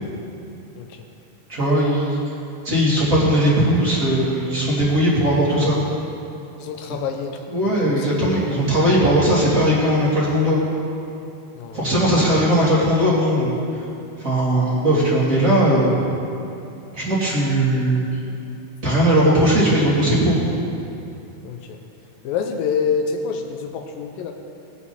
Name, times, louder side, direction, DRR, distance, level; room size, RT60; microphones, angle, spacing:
voice 1, 1.5-2.2 2.6-5.8 7.5-10.6 11.7-13.6 14.2-15.9 16.9-18.0 18.8-20.4, right 1 dB, 25° right, -7 dB, 1.9 m, -18 dB
voice 2, 6.6-7.4 7.8-8.1 11.6-11.8 21.4-21.8 22.2-24.3, left 6 dB, 80° left, 4 dB, 2.2 m, -26 dB
19.5 x 7.1 x 4.2 m, 2.7 s
omnidirectional pair, 4.6 m